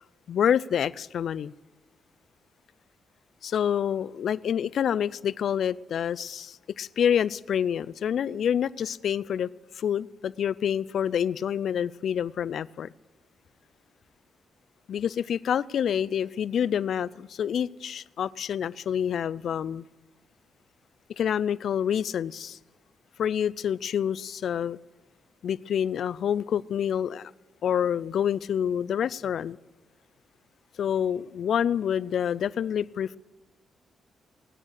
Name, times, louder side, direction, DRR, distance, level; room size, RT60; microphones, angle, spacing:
voice 1, 0.3-1.5 3.4-9.5 9.8-12.9 14.9-19.8 21.2-22.6 23.2-24.8 25.4-27.3 27.6-29.6 30.8-33.2, left 8 dB, 70° left, 18 dB, 0.4 m, -27 dB
17.5 x 10.0 x 6.4 m, 1.3 s
cardioid pair, 115°, 0 cm